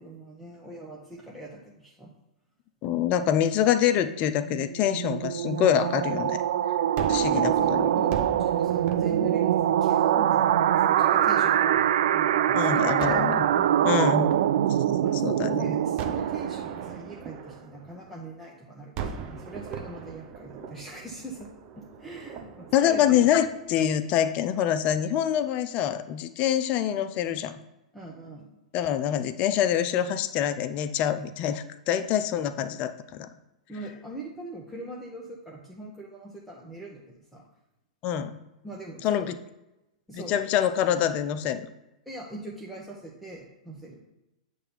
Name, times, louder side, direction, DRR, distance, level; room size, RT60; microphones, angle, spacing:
voice 1, 0.0-2.1 7.1-13.2 13.5-13.9 15.0-21.5 21.7-23.4 27.9-28.5 33.7-37.5 38.6-39.3 40.1-40.4 42.0-44.0, right 1 dB, ahead, -4 dB, 1.1 m, -42 dB
voice 2, 2.8-6.4 7.1-7.9 12.5-13.4 13.8-14.3 14.7-14.8 15.2-15.8 22.7-27.6 28.7-33.3 38.0-38.4 39.0-39.3 40.1-41.7, left 10 dB, 35° left, 11 dB, 0.5 m, -25 dB
sound 1, 4.4-17.1, right 10 dB, 60° right, 0.4 m, -24 dB
Gunshot gunfire, 7.0-12.1 13.0-15.4 16.0-18.5 19.0-24.2, right 6 dB, 35° right, 0.9 m, -41 dB
8.2 x 3.4 x 5.6 m, 0.96 s
figure-of-eight pair, 105°, 4 cm